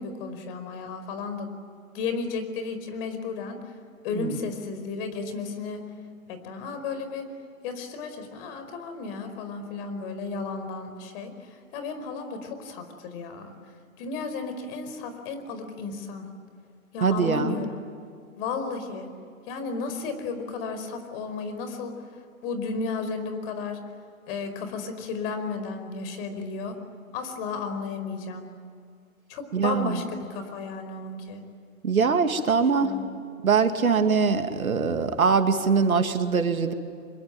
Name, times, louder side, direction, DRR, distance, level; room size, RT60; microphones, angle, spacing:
voice 1, 0.0-1.5 1.9-3.6 4.0-5.8 6.3-7.2 7.6-13.5 14.0-16.3 16.9-17.7 18.4-19.1 19.5-21.9 22.4-23.8 24.3-26.8 27.1-28.5 29.3-31.4 32.8-33.0, left 4 dB, 40° left, 8 dB, 4.9 m, -33 dB
voice 2, 17.0-17.5 29.5-30.0 31.8-32.9 33.4-36.7, right 5 dB, 90° right, 7 dB, 2.5 m, -22 dB
26.0 x 22.5 x 9.3 m, 2.3 s
hypercardioid pair, 130°, 41 cm